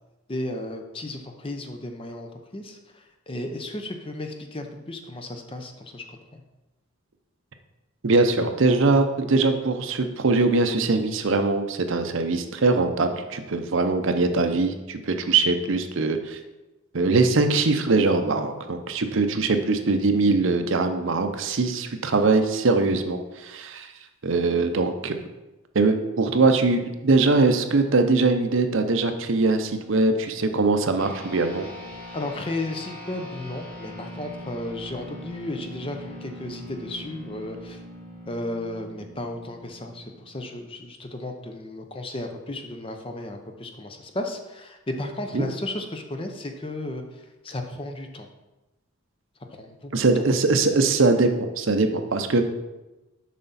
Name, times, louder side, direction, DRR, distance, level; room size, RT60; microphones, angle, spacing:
voice 1, 0.3-6.4 32.1-37.8 38.3-47.0 47.4-48.3 49.6-49.9, left 1 dB, 25° left, 4 dB, 0.6 m, -34 dB
voice 2, 8.0-16.4 16.9-23.9 24.2-25.2 25.7-31.7 45.3-45.4 49.9-52.4, right 3 dB, 60° right, 7 dB, 0.6 m, -22 dB
sound 1, 31.0-40.7, left 1 dB, 5° left, 1.3 m, -41 dB
7.4 x 5.7 x 4.1 m, 1.0 s
head